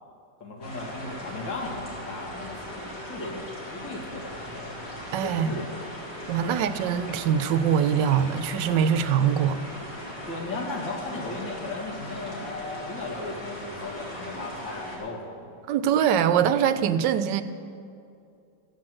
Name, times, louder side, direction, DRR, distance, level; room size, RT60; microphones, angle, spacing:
voice 1, 0.4-4.7 5.2-5.8 6.4-6.6 10.3-15.6, left 2 dB, 85° left, -1 dB, 2.8 m, -36 dB
sound 1, 0.6-15.0, equal, 70° left, 3.5 m, -39 dB
voice 2, 5.1-5.6 6.3-9.6 15.7-17.4, right 8 dB, 80° right, 12 dB, 1.2 m, -23 dB
14.5 x 7.6 x 7.8 m, 2.5 s
omnidirectional pair, 2.0 m